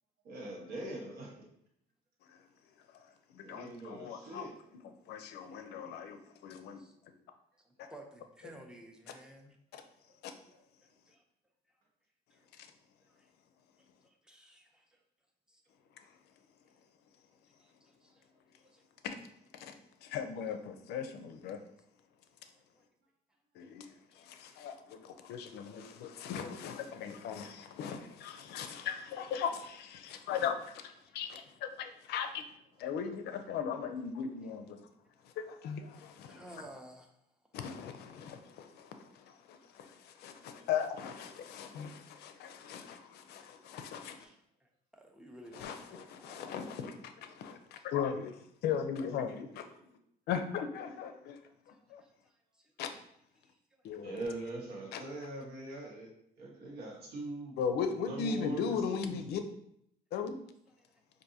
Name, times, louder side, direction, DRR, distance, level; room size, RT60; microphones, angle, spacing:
voice 1, 0.2-1.4 3.4-4.5 10.0-10.1 10.5-10.6 54.0-56.1 56.4-57.6 57.9-59.2, right 2 dB, 70° right, 1.2 m, -42 dB
voice 2, 2.9-4.5 4.8-6.8 9.7-9.8 10.2-10.3 12.6-12.7 19.0-19.2 19.5-19.8 20.0-21.6 23.6-32.4 32.8-34.9 35.4-36.4 37.5-44.3 45.5-49.7 50.3-51.4 51.7-52.0 52.8-52.9 53.8-54.1 54.9-55.0 57.6-59.4 60.1-60.4, left 7 dB, 75° left, 0.5 m, -38 dB
voice 3, 7.9-9.6 11.1-11.2 11.7-11.8 12.3-12.5 13.1-13.3 13.8-15.0 15.5-15.6 17.6-18.3 18.5-18.8 22.5-22.8 23.8-24.2 24.5-24.6 31.1-31.2 31.4-31.5 35.0-35.2 36.0-37.2 41.8-43.1 43.8-46.9 47.1-47.4 47.7-47.8 51.7-52.7 53.4-53.9 60.8-60.9, right 1 dB, 5° right, 0.6 m, -56 dB
4.7 x 2.6 x 2.6 m
cardioid pair, 110°, 17 cm